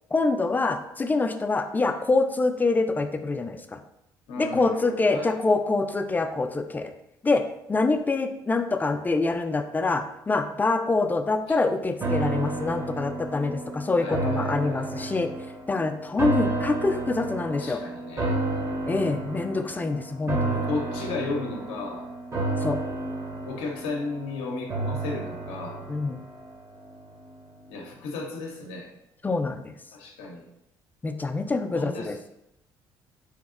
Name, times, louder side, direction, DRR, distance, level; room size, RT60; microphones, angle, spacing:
voice 1, 0.1-3.8 4.4-6.9 7.2-7.4 7.7-15.3 15.7-17.8 18.9-20.6 22.6-22.8 25.9-26.2 29.2-29.7 31.0-32.2, left 3 dB, 15° left, 6 dB, 0.3 m, -25 dB
voice 2, 4.3-5.3 14.0-15.1 17.5-18.4 20.6-22.1 23.5-25.8 27.7-28.9 29.9-30.5 31.7-32.2, left 3 dB, 75° left, 1 dB, 0.6 m, -34 dB
sound 1, 12.0-27.3 27.7-27.8, right 2 dB, 30° right, 0.8 m, -31 dB
2.9 x 2.7 x 2.4 m, 0.83 s
hypercardioid pair, 60°, 10 cm